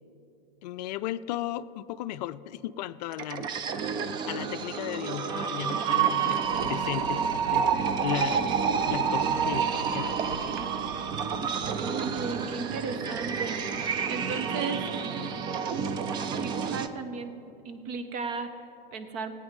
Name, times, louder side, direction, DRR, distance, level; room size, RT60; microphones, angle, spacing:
voice 1, 0.6-3.6 4.3-8.6 8.9-10.2, left 13 dB, 45° left, 14 dB, 0.5 m, -35 dB
sound 1, 3.1-16.9, right 6 dB, 15° right, 0.3 m, -29 dB
sound 2, 6.4-12.2, right 5 dB, 75° right, 1.0 m, -43 dB
voice 2, 11.8-14.9 16.3-19.3, right 4 dB, 45° right, 9 dB, 1.2 m, -36 dB
17.0 x 9.0 x 5.3 m, 2.9 s
hypercardioid pair, 120°, 30 cm